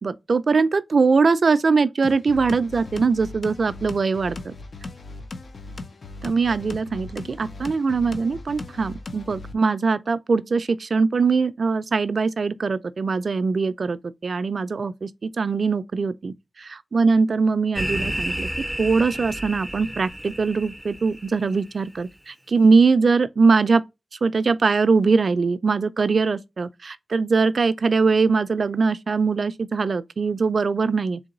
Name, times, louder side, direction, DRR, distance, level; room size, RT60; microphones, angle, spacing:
voice 1, 0.0-4.6 6.2-23.8 24.2-31.2, right 4 dB, 65° right, 0.3 m, -22 dB
sound 1, 2.0-9.5, left 3 dB, 65° left, 0.5 m, -38 dB
sound 2, 17.8-21.6, equal, 5° right, 0.5 m, -31 dB
3.8 x 2.9 x 3.7 m
cardioid pair, 60°, 0 cm